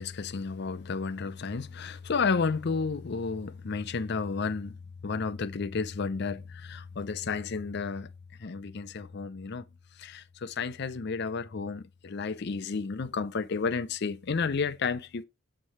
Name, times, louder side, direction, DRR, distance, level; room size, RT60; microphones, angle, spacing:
voice 1, 0.0-4.7 5.0-8.1 8.4-9.6 10.0-15.2, left 5 dB, 50° left, 0.5 m, -32 dB
7.4 x 3.3 x 5.6 m
head